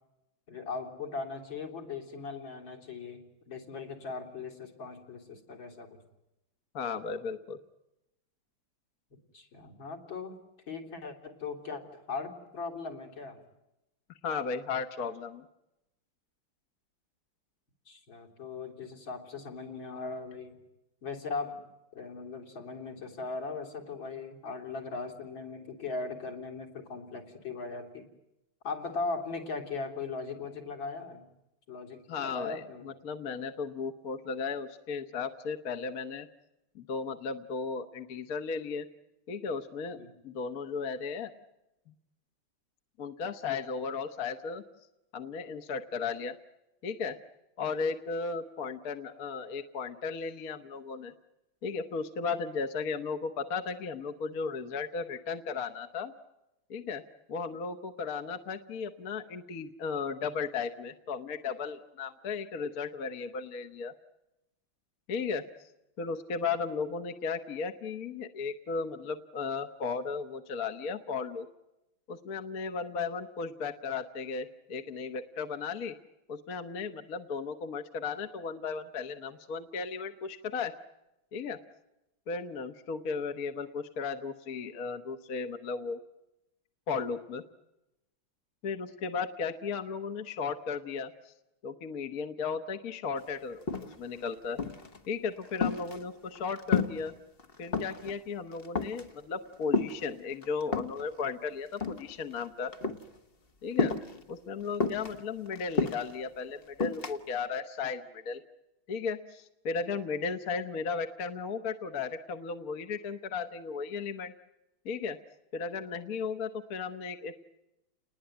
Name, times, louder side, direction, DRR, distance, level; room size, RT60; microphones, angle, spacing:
voice 1, 0.5-6.0 9.3-10.4 10.7-13.4 17.9-20.6 21.0-21.6 21.9-28.0 28.6-31.3 31.7-32.9 40.0-40.1, left 4 dB, 80° left, 2 dB, 4.3 m, -39 dB
voice 2, 6.7-7.6 14.2-15.4 32.1-36.3 36.7-38.9 39.3-40.0 40.2-41.3 43.0-44.6 45.1-46.3 46.8-47.2 47.6-51.1 51.6-56.1 56.7-57.0 57.3-63.9 65.1-65.7 66.0-71.5 72.1-75.9 76.3-80.7 81.3-81.6 82.3-86.0 86.9-87.4 88.6-91.3 91.6-93.6 94.0-94.6 95.1-97.1 97.6-102.7 103.6-103.9 104.3-108.4 108.9-114.3 114.8-115.2 115.5-117.4, left 5 dB, 50° left, 7 dB, 1.6 m, -35 dB
sound 1, 93.2-93.3 93.5-94.2 94.6-95.0 95.3-97.1 97.4-98.1 98.5-99.1 99.7-101.0 101.7-102.5 102.7-103.0 103.8-104.2 104.8-106.2 106.8-107.2, left 4 dB, 30° left, 1.6 m, -31 dB
30.0 x 20.5 x 9.2 m, 0.92 s
omnidirectional pair, 2.1 m